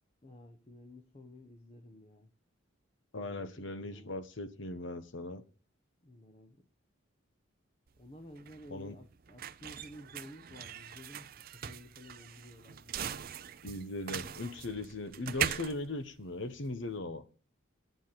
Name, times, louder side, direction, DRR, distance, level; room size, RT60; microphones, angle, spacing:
voice 1, 0.2-2.3 3.2-4.2 6.0-6.6 8.0-13.3, left 1 dB, 30° left, 1.1 m, -53 dB
voice 2, 3.1-5.4 8.7-9.0 13.6-17.2, left 2 dB, 60° left, 1.1 m, -39 dB
sound 1, 7.9-16.9, right 9 dB, 45° right, 0.5 m, -41 dB
9.3 x 8.9 x 7.7 m
head